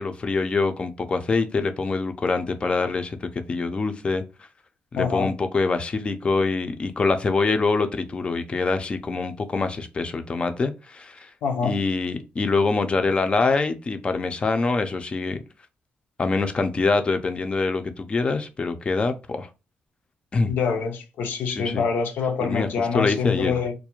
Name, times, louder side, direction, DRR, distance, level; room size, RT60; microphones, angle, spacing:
voice 1, 0.0-4.2 4.9-11.3 11.6-15.4 16.2-19.5 20.3-20.5 21.5-21.8 22.4-23.5, left 3 dB, 35° left, 0.4 m, -25 dB
voice 2, 5.0-5.3 11.4-11.8 20.5-23.7, left 5 dB, 80° left, 0.5 m, -25 dB
2.4 x 2.1 x 2.9 m
cardioid pair, 95°, 3 cm